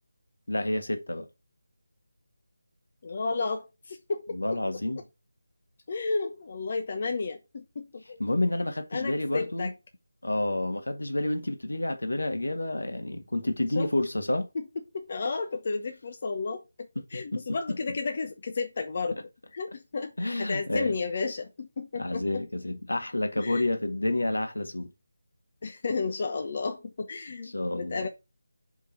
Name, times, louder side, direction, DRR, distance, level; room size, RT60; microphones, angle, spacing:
voice 1, 0.5-1.3 4.3-5.0 8.2-9.7 10.2-14.5 17.1-17.4 20.2-21.0 22.0-24.9 27.5-28.1, left 1 dB, 70° left, 1.6 m, -29 dB
voice 2, 3.0-4.4 5.9-8.2 8.9-9.7 13.7-13.9 14.5-14.6 14.9-22.4 23.3-23.6 25.6-28.1, left 4 dB, 35° left, 0.9 m, -32 dB
5.5 x 5.2 x 5.7 m
figure-of-eight pair, 160°, 0 cm